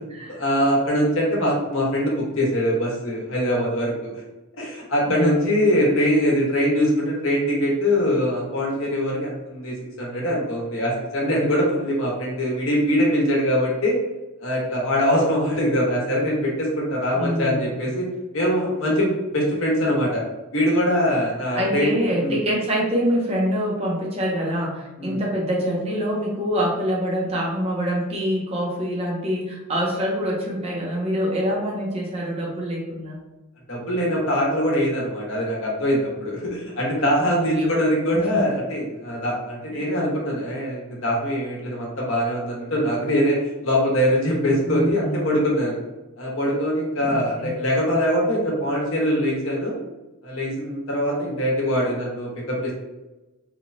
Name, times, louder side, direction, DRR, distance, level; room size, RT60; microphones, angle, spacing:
voice 1, 0.3-4.1 4.6-14.0 14.4-18.1 18.3-20.2 20.5-21.9 22.2-22.4 25.0-25.2 33.7-45.8 46.2-49.8 50.2-52.7, equal, 65° left, -3 dB, 0.8 m, -23 dB
voice 2, 5.1-5.6 17.1-17.6 21.6-33.2 37.2-37.7 38.1-38.4 39.7-39.9 44.6-45.3 47.0-47.6, equal, 30° right, -3 dB, 0.5 m, -25 dB
3.0 x 2.1 x 2.5 m, 1.0 s
head